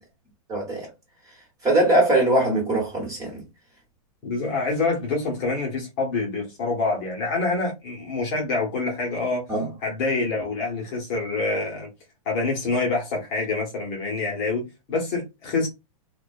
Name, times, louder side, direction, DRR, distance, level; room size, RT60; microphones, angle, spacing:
voice 1, 0.5-0.9 1.6-3.4 9.5-9.7, right 1 dB, 20° right, 1.2 m, -21 dB
voice 2, 4.2-9.4 9.8-11.9 12.3-15.7, left 3 dB, 35° left, 0.9 m, -26 dB
2.4 x 2.2 x 2.3 m
supercardioid pair, 155°, 18 cm